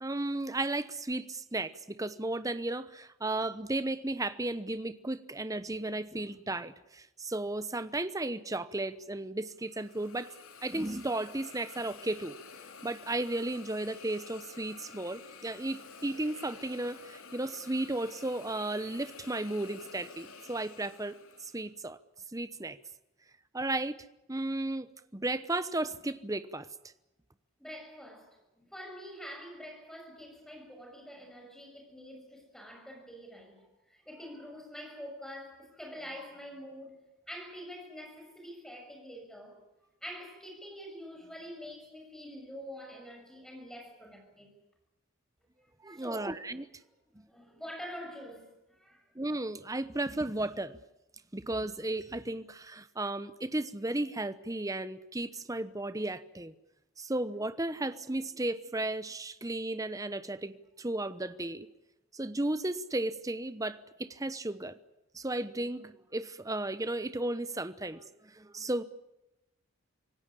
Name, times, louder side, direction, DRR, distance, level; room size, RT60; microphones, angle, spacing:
voice 1, 0.0-10.3 10.6-12.3 12.8-22.0 22.3-22.8 23.5-24.9 25.1-26.7 45.8-46.7 49.1-50.8 51.3-56.5 57.0-61.7 62.1-64.7 65.1-68.8, right 2 dB, 15° right, 1.0 m, -34 dB
Hiss, 9.6-21.7, left 5 dB, 80° left, 2.8 m, -51 dB
voice 2, 27.6-37.0 37.3-39.6 40.0-44.5 45.9-46.4 47.3-49.0, equal, ahead, 6.5 m, -46 dB
26.5 x 18.0 x 8.5 m
head